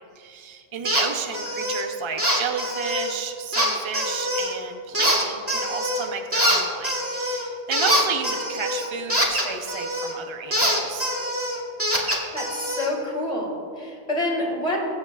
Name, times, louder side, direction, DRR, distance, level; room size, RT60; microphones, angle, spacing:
voice 1, 0.2-11.1, right 6 dB, 30° right, 4 dB, 0.7 m, -32 dB
sound 1, 0.8-1.1 1.3-1.8 2.2-3.1 3.5-4.5 4.9-6.1 6.3-10.1 10.5-12.9, equal, 10° right, 1.4 m, -24 dB
voice 2, 12.1-14.8, left 1 dB, 30° left, -1 dB, 2.2 m, -28 dB
22.5 x 8.1 x 2.4 m, 2.4 s
omnidirectional pair, 1.2 m